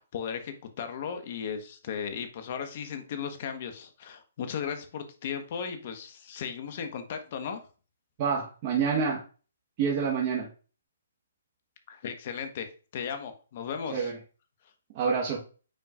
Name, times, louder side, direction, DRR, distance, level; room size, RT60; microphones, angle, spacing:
voice 1, 0.0-7.6 11.9-12.7 12.9-14.1, left 7 dB, 50° left, 7 dB, 1.3 m, -36 dB
voice 2, 8.2-9.2 9.8-10.5 13.9-14.1 14.9-15.4, right 6 dB, 40° right, -2 dB, 1.3 m, -27 dB
9.0 x 4.5 x 2.5 m, 0.36 s
hypercardioid pair, 140°, 0 cm